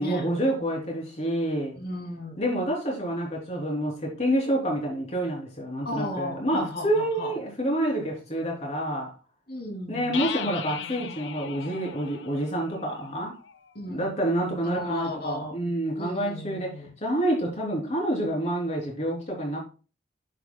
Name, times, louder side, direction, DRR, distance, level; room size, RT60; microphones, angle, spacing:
voice 1, 0.0-1.8 2.4-9.1 9.9-13.3 13.9-16.7 17.0-19.6, right 1 dB, 40° left, 3.4 m, -28 dB
voice 2, 1.8-2.4 5.8-7.3 9.5-10.2 13.7-14.1 14.6-15.6 16.0-16.9, left 1 dB, 60° left, 2.6 m, -35 dB
sound 1, 10.1-13.8, left 7 dB, 85° left, 0.7 m, -38 dB
9.9 x 7.3 x 2.3 m
head